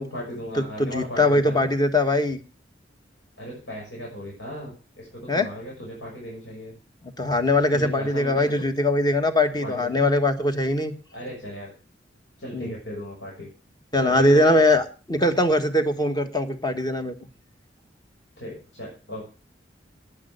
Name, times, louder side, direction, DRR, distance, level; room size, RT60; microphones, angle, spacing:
voice 1, 0.0-1.7 3.4-6.7 7.7-8.5 9.6-10.1 11.1-11.7 12.4-13.5 13.9-14.6 18.4-19.3, equal, 75° left, -4 dB, 6.4 m, -36 dB
voice 2, 0.5-2.4 5.3-5.5 7.2-10.9 12.5-12.7 13.9-17.1, left 1 dB, 25° left, 8 dB, 1.4 m, -21 dB
11.0 x 10.0 x 6.6 m, 0.35 s
head